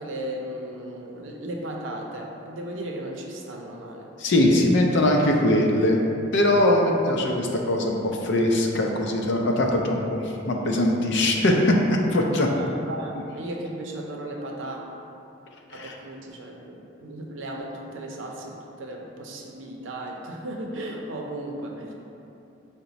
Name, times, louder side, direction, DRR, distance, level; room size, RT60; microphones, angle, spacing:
voice 1, 0.0-4.1 12.6-14.8 15.7-21.9, right 1 dB, 80° right, 0 dB, 0.6 m, -35 dB
voice 2, 4.2-6.0 6.3-8.0 8.2-11.7 12.1-12.5 15.7-15.9, left 1 dB, 65° left, 1 dB, 0.5 m, -21 dB
5.7 x 2.1 x 4.0 m, 2.8 s
head